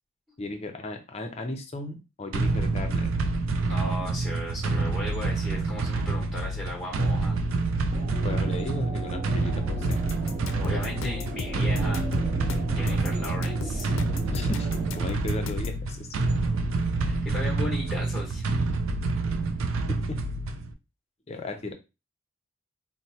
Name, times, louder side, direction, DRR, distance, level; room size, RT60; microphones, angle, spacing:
voice 1, 0.4-3.1 8.2-10.0 14.3-16.1 16.4-16.7 19.9-20.2 21.3-21.7, left 2 dB, 30° left, 6 dB, 0.5 m, -36 dB
sound 1, 2.3-20.7, right 3 dB, 80° right, 0.4 m, -27 dB
voice 2, 3.7-7.4 10.5-12.1 12.7-13.9 17.0-18.5, left 1 dB, ahead, -2 dB, 0.9 m, -36 dB
sound 2, 7.9-15.1, right 1 dB, 25° right, 0.7 m, -39 dB
sound 3, 9.9-15.8, left 4 dB, 80° left, 0.4 m, -36 dB
4.2 x 2.0 x 2.7 m, 0.28 s
head